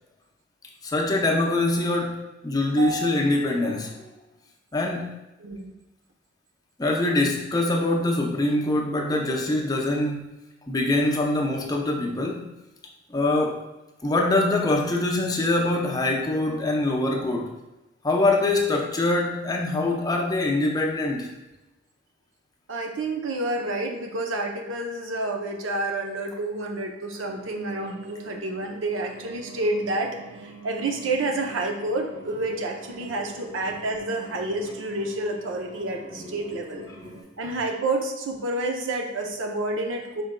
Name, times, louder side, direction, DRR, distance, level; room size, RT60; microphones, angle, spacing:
voice 1, 0.8-4.1 4.7-5.1 6.8-10.3 10.7-12.5 13.1-13.6 14.0-17.5 18.0-21.3, left 2 dB, 20° left, -1 dB, 0.6 m, -24 dB
voice 2, 2.7-3.2 5.4-5.7 22.7-30.1 30.4-36.8 37.4-40.2, right 2 dB, 80° right, 3 dB, 0.6 m, -29 dB
sound 1, 27.2-37.2, right 1 dB, 35° right, 1.3 m, -45 dB
4.9 x 4.5 x 2.2 m, 1.0 s
head